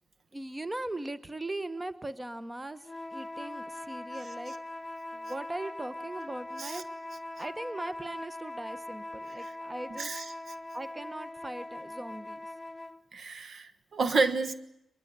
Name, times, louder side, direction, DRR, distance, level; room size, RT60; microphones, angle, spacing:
voice 1, 0.3-2.8 3.1-4.6 5.1-6.8 7.4-10.2 10.7-12.5, right 1 dB, 20° right, 1.1 m, -39 dB
sound 1, 2.8-13.0, left 2 dB, 20° left, 0.9 m, -41 dB
voice 2, 13.1-14.6, right 3 dB, 60° right, 1.3 m, -29 dB
22.5 x 22.0 x 8.2 m
cardioid pair, 55°, 0 cm